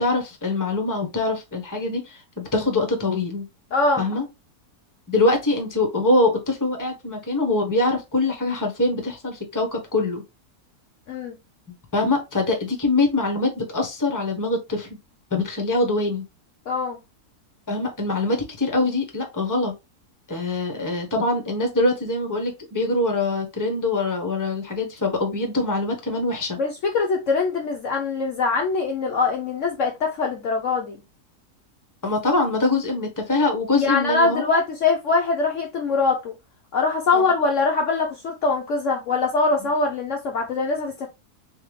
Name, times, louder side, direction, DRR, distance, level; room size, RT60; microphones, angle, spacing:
voice 1, 0.0-3.4 4.0-4.2 5.1-10.2 11.9-14.9 15.3-16.2 17.7-19.7 20.3-26.6 32.0-34.4 37.1-37.2, left 2 dB, 15° left, 1.0 m, -23 dB
voice 2, 3.7-4.1 11.1-11.4 16.7-17.0 26.6-31.0 33.7-36.3 36.7-41.1, left 4 dB, 60° left, 1.0 m, -23 dB
3.9 x 3.5 x 3.2 m
omnidirectional pair, 1.6 m